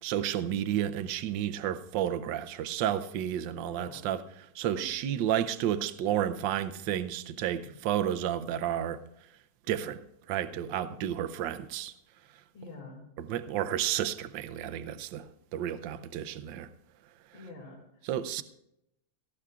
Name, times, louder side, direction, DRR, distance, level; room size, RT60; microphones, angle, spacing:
voice 1, 0.0-4.2 4.5-9.0 9.7-10.0 10.3-11.9 13.2-16.7 18.0-18.4, right 10 dB, 75° right, 1.3 m, -31 dB
voice 2, 3.7-4.0 4.6-4.9 7.6-7.7 12.5-13.0 17.3-18.1, left 3 dB, 80° left, 3.3 m, -47 dB
18.5 x 15.0 x 2.4 m
omnidirectional pair, 2.1 m